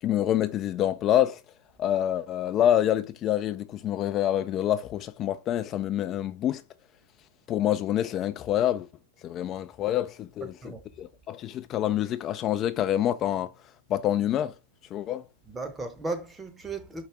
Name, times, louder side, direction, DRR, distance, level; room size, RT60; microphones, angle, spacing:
voice 1, 0.0-1.4 1.8-6.6 7.5-8.9 9.2-10.5 11.0-13.5 13.9-14.5 14.9-15.2, left 11 dB, 30° left, 0.3 m, -26 dB
voice 2, 10.4-10.8 15.5-17.1, right 3 dB, 15° right, 0.8 m, -36 dB
4.7 x 2.4 x 4.6 m
hypercardioid pair, 110°, 0 cm